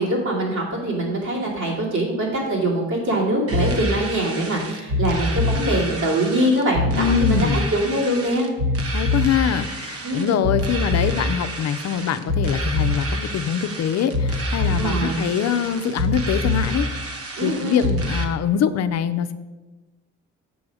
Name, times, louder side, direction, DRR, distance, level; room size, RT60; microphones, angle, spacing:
voice 1, 0.0-8.5 10.0-10.3 14.6-15.2 17.4-18.0, right 1 dB, 75° right, -4 dB, 2.9 m, -23 dB
sound 1, 3.5-18.2, left 1 dB, 50° right, 1.0 m, -25 dB
voice 2, 6.9-7.7 8.9-16.9 17.4-19.3, left 8 dB, 60° left, 11 dB, 0.6 m, -23 dB
7.0 x 6.2 x 4.9 m, 1.2 s
cardioid pair, 90°, 30 cm